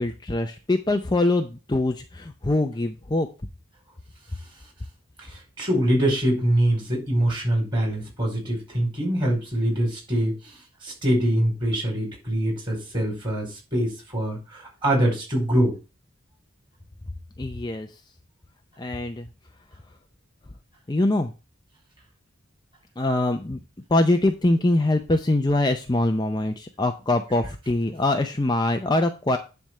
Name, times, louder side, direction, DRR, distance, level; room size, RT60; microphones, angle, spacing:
voice 1, 0.0-3.3 17.4-17.9 18.8-19.3 20.9-21.3 23.0-23.6 23.9-29.4, left 2 dB, 20° left, 5 dB, 0.6 m, -23 dB
voice 2, 5.2-15.8, right 1 dB, 25° right, -1 dB, 4.8 m, -24 dB
10.5 x 3.5 x 6.5 m, 0.31 s
head